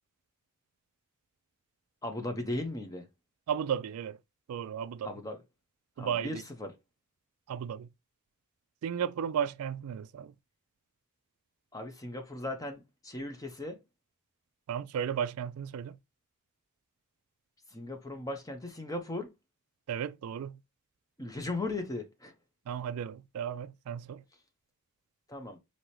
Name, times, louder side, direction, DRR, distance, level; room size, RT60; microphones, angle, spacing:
voice 1, 2.0-3.1 5.0-5.4 6.0-6.7 11.7-13.8 17.7-19.3 21.2-22.3 25.3-25.6, left 2 dB, 15° left, 0.8 m, -37 dB
voice 2, 3.5-4.2 4.5-5.1 6.0-6.4 7.5-7.9 8.8-10.3 14.7-16.0 19.9-20.6 22.7-24.2, right 8 dB, 75° right, 0.3 m, -34 dB
4.8 x 2.8 x 3.0 m
head